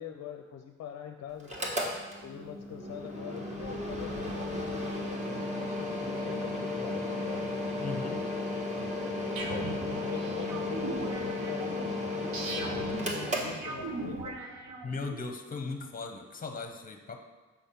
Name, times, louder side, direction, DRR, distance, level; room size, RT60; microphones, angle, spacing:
voice 1, 0.0-1.5 2.2-4.8 5.3-7.6 7.8-8.2 9.5-14.4, left 9 dB, 60° left, 5 dB, 0.5 m, -43 dB
Mechanical fan, 1.4-14.2, left 2 dB, 25° right, 1.3 m, -34 dB
voice 2, 7.8-8.2 14.8-17.2, left 4 dB, 30° left, 5 dB, 0.9 m, -37 dB
sound 1, 9.4-15.2, right 3 dB, 70° right, 1.0 m, -39 dB
7.1 x 3.5 x 5.7 m, 1.3 s
cardioid pair, 90°, 30 cm